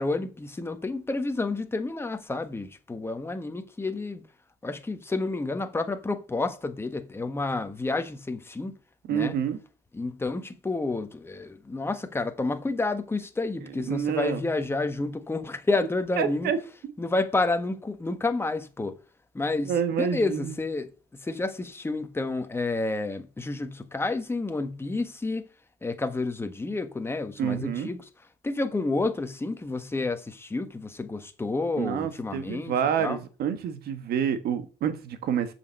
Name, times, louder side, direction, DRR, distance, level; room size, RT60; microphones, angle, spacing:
voice 1, 0.0-4.2 4.6-8.7 9.1-9.3 9.9-16.5 17.0-19.0 19.3-25.4 25.8-28.1 28.4-33.2, left 3 dB, 15° left, 1.3 m, -30 dB
voice 2, 9.1-9.6 13.9-14.4 16.2-16.6 16.8-16.9 19.6-20.5 27.4-27.9 31.8-35.5, right 8 dB, 65° right, 1.5 m, -28 dB
7.3 x 6.3 x 6.5 m
cardioid pair, 110°, 17 cm